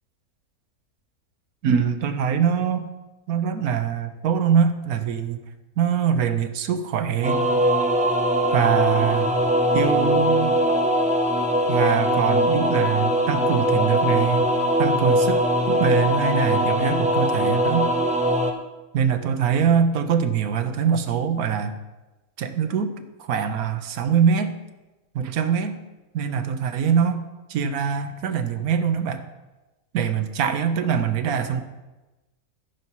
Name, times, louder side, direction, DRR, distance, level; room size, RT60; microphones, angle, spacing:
voice 1, 1.6-2.9 3.3-5.4 5.8-7.4 8.5-9.3 9.7-10.6 11.7-14.5 14.8-17.9 18.9-21.8 22.4-24.6 25.1-25.8 26.1-27.2 27.5-29.2 29.9-31.6, right 7 dB, 75° right, 9 dB, 1.2 m, -23 dB
sound 1, 7.2-18.5, equal, 10° right, 0.3 m, -21 dB
13.5 x 5.6 x 4.6 m, 1.1 s
omnidirectional pair, 1.6 m